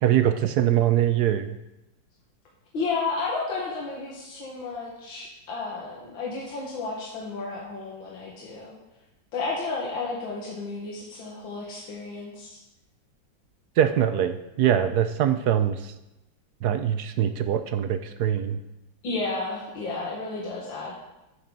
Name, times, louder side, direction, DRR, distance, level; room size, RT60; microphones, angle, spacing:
voice 1, 0.0-1.6 13.8-15.9 16.6-18.6, right 10 dB, 70° right, 10 dB, 1.0 m, -23 dB
voice 2, 2.7-8.7 9.3-12.6 19.0-20.9, left 3 dB, 80° left, -4 dB, 2.5 m, -32 dB
13.5 x 9.5 x 4.0 m, 0.95 s
omnidirectional pair, 2.1 m